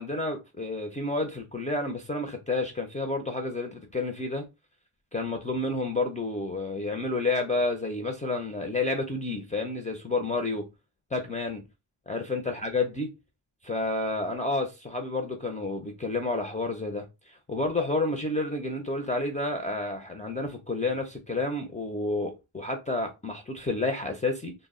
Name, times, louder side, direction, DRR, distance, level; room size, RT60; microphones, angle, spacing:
voice 1, 0.0-4.5 5.1-10.7 11.1-11.6 12.1-13.1 13.6-24.5, left 2 dB, 20° left, 0.3 m, -30 dB
2.0 x 2.0 x 3.5 m
cardioid pair, 85°, 46 cm